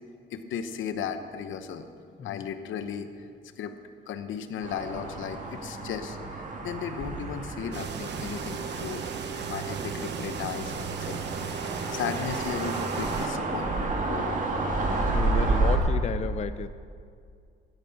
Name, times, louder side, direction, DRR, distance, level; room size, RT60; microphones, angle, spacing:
voice 1, 0.3-1.9 2.2-3.3 3.6-3.7 4.1-9.1 9.5-11.3 11.9-14.4, left 7 dB, 75° left, 9 dB, 1.0 m, -35 dB
sound 1, 4.6-15.8, right 3 dB, 40° right, 2.4 m, -31 dB
sound 2, 7.7-13.3, right 7 dB, 60° right, 1.1 m, -36 dB
voice 2, 14.8-16.7, left 7 dB, 35° left, 12 dB, 0.5 m, -33 dB
13.0 x 9.3 x 8.1 m, 2.3 s
cardioid pair, 90°, 20 cm